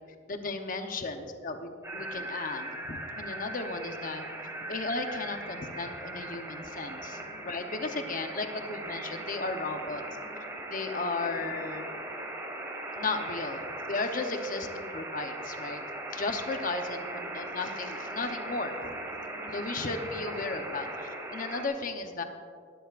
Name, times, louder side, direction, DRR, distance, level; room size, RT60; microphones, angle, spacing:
voice 1, 0.3-4.2 4.7-10.0 10.7-12.0 12.9-15.8 16.1-18.9 19.5-22.2, left 3 dB, 45° left, 5 dB, 0.9 m, -35 dB
sound 1, 1.8-21.6, right 1 dB, 15° right, 1.8 m, -39 dB
19.0 x 13.0 x 2.5 m, 2.2 s
head